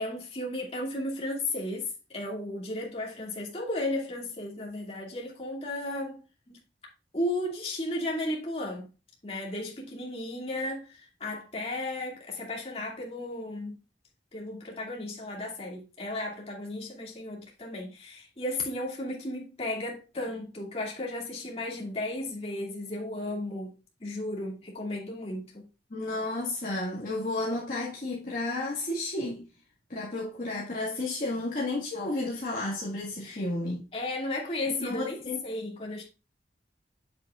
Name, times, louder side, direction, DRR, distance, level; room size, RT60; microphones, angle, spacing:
voice 1, 0.0-6.2 6.5-6.6 7.1-8.9 9.2-13.8 14.3-23.7 24.0-25.7 33.2-33.4 33.9-35.2 35.4-36.0, left 1 dB, 35° left, 2.4 m, -34 dB
voice 2, 25.9-29.5 29.9-33.8 34.8-35.4, left 2 dB, 50° left, 1.8 m, -32 dB
7.8 x 7.5 x 2.4 m
head